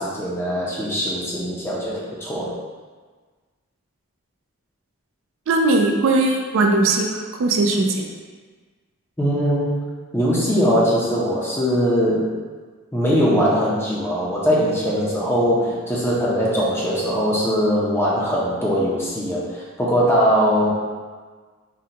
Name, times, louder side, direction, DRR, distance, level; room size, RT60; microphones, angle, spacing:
voice 1, 0.0-2.6 9.2-9.7 10.1-12.3 12.9-20.7, equal, 10° left, -5 dB, 0.4 m, -21 dB
voice 2, 5.5-8.1, right 2 dB, 60° right, 2 dB, 0.3 m, -19 dB
3.8 x 2.1 x 2.7 m, 1.5 s
head